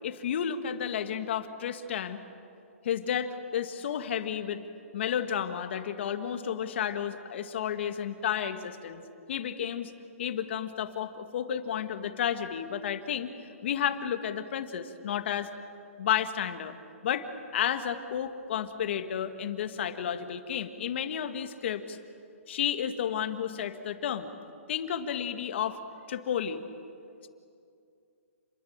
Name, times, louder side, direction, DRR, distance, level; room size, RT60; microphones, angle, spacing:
voice 1, 0.0-2.2 2.8-4.6 4.9-9.0 9.3-9.9 10.2-13.3 13.6-15.5 16.0-16.7 17.0-22.0 22.5-24.3 24.7-25.8 26.1-26.6, left 9 dB, 55° left, 8 dB, 2.1 m, -32 dB
29.5 x 22.0 x 9.0 m, 2.5 s
hypercardioid pair, 150°, 8 cm